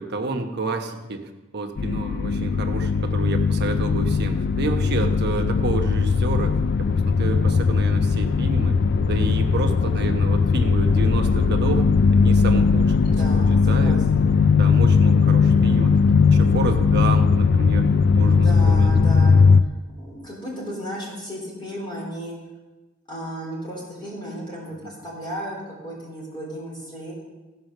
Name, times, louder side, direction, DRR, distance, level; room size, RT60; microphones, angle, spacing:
voice 1, 0.0-8.8 9.1-11.8 12.1-13.1 13.4-14.0 14.6-16.0 16.3-18.9 24.8-24.9, right 3 dB, 55° right, 4 dB, 1.1 m, -29 dB
sound 1, 1.8-19.6, left 5 dB, 55° left, 0.4 m, -18 dB
voice 2, 13.0-14.2 18.3-19.7 20.0-22.3 23.1-27.1, equal, 20° left, -4 dB, 3.4 m, -34 dB
14.5 x 5.6 x 6.6 m, 1.2 s
head